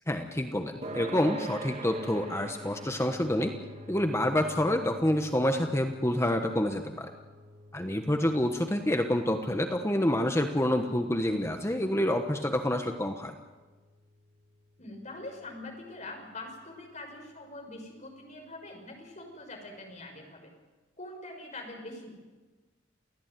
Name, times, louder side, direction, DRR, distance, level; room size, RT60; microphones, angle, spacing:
voice 1, 0.1-3.5 3.9-7.1 7.7-13.4, left 1 dB, 15° left, 5 dB, 1.3 m, -28 dB
sound 1, 0.8-15.7, right 1 dB, 35° right, 2.6 m, -46 dB
voice 2, 14.8-20.5 21.0-22.1, left 2 dB, 40° left, 2 dB, 6.4 m, -44 dB
28.5 x 16.5 x 9.3 m, 1.3 s
head